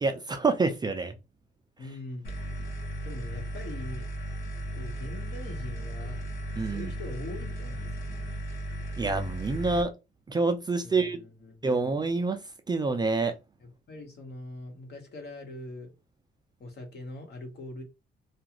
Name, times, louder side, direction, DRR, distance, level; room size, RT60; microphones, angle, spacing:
voice 1, 0.0-1.1 6.6-6.9 9.0-9.9 10.3-11.2 11.6-12.4 12.7-13.3, right 3 dB, 20° right, 0.4 m, -27 dB
voice 2, 1.8-2.5 3.0-4.1 4.7-6.2 6.6-8.3 10.8-11.9 13.6-15.9 16.6-17.8, left 2 dB, 55° left, 1.1 m, -42 dB
sound 1, 2.2-9.8, right 1 dB, 80° left, 0.8 m, -36 dB
2.4 x 2.3 x 2.9 m
cardioid pair, 90°, 20 cm